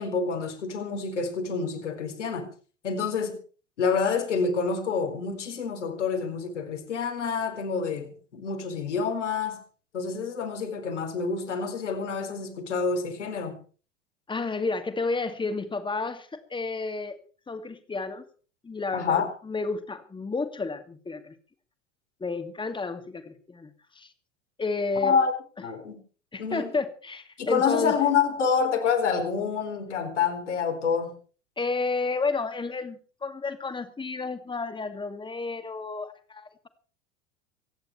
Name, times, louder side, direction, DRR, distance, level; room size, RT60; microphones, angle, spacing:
voice 1, 0.0-2.5 2.8-3.4 3.8-9.6 9.9-13.6 18.9-19.3 25.0-25.3 25.6-26.0 26.4-26.6 27.4-31.1, left 5 dB, 70° left, 4.3 m, -27 dB
voice 2, 14.3-17.2 17.5-18.2 18.6-21.3 22.2-24.1 24.6-25.2 26.3-28.0 31.6-36.7, left 3 dB, 15° left, 2.3 m, -31 dB
24.5 x 10.5 x 4.6 m
figure-of-eight pair, 80°, 37 cm